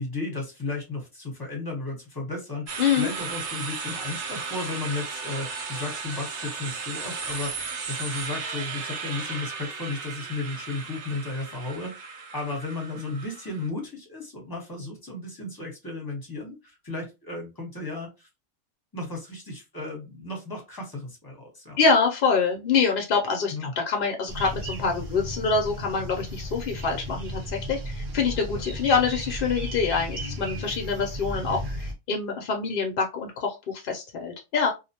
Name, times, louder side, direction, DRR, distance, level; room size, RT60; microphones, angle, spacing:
voice 1, 0.0-18.3 18.9-21.8 23.5-23.7 28.5-28.6, left 3 dB, 20° left, 0 dB, 0.8 m, -34 dB
sound 1, 2.7-13.7, right 5 dB, 80° right, 1.0 m, -35 dB
voice 2, 2.8-3.1 21.8-34.7, left 5 dB, 60° left, 2 dB, 0.6 m, -25 dB
sound 2, 24.3-31.9, equal, 50° right, 0.7 m, -35 dB
2.5 x 2.1 x 2.7 m, 0.25 s
omnidirectional pair, 1.2 m